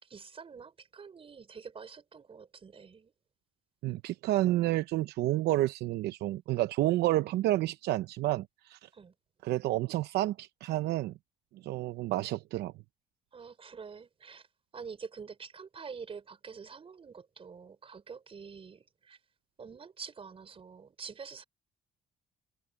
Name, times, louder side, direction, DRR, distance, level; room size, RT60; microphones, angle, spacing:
voice 1, 0.0-3.1 8.9-9.1 13.3-14.5 14.7-19.2 19.6-21.4, right 5 dB, 35° right, 5.4 m, -46 dB
voice 2, 3.8-8.9 9.4-11.1 11.6-12.7, right 16 dB, 75° right, 0.7 m, -30 dB
cardioid pair, 110°, 17 cm